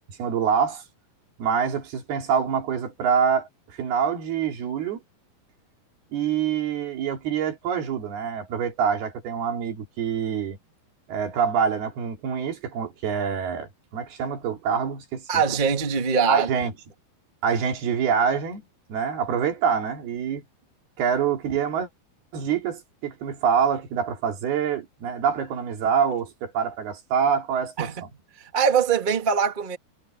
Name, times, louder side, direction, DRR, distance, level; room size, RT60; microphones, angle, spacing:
voice 1, 0.2-0.8 1.4-5.0 6.1-10.6 11.1-15.2 16.3-16.7 17.4-18.6 18.9-20.4 21.0-21.9 22.3-28.1, right 7 dB, 80° right, 5.1 m, -25 dB
voice 2, 15.3-16.5 27.8-28.0 28.5-29.8, right 6 dB, 30° right, 0.9 m, -22 dB
omnidirectional pair, 4.4 m